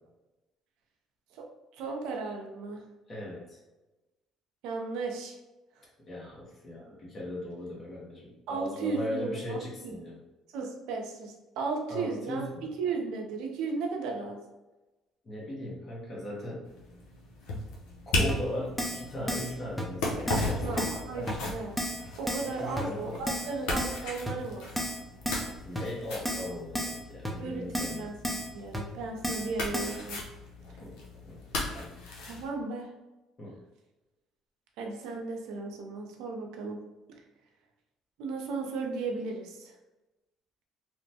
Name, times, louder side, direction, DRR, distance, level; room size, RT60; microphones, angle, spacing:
voice 1, 1.8-2.8 4.6-5.4 8.5-10.0 10.5-12.5 12.8-14.4 20.6-21.8 22.2-24.7 27.4-30.2 32.3-32.9 34.8-36.8 38.2-39.7, right 4 dB, 80° right, 1 dB, 0.5 m, -35 dB
voice 2, 3.1-3.6 6.1-10.2 11.9-12.7 15.2-16.7 18.1-21.4 22.5-23.2 25.6-28.1 30.8-31.0 31.2-31.4 31.7-32.0 33.4-33.6, left 1 dB, 40° left, -4 dB, 1.1 m, -38 dB
sound 1, 16.6-32.5, left 2 dB, 80° left, 0.7 m, -37 dB
Keyboard (musical), 18.3-18.4 18.8-19.0 19.3-19.5 19.8-19.9 20.3-20.5 20.8-21.0 21.3-21.4 21.8-22.0 22.3-22.5 22.8-22.9 23.3-23.5 23.8-24.0 24.3-24.4 24.8-25.0 25.3-25.5 25.8-25.9 26.3-26.5 26.8-27.0 27.2-27.3 27.7-28.0 28.2-28.5 28.7-28.8 29.2-29.5 29.7-30.0, equal, ahead, 0.6 m, -32 dB
2.9 x 2.1 x 2.7 m, 1.1 s
supercardioid pair, 80°, 0 cm